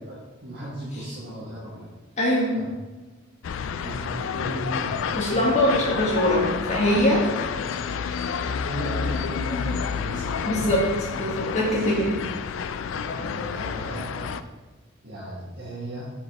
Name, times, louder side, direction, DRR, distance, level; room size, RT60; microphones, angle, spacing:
voice 1, 0.0-1.9 2.5-2.7 3.8-5.8 8.6-10.8 13.0-14.4 15.0-16.1, right 1 dB, 60° right, -8 dB, 1.5 m, -36 dB
voice 2, 2.2-2.6 5.2-7.3 10.5-10.9 11.1-12.1, equal, 35° left, -4 dB, 1.7 m, -22 dB
sound 1, 3.4-14.4, left 6 dB, 75° left, 0.3 m, -29 dB
5.8 x 5.3 x 4.2 m, 1.2 s
head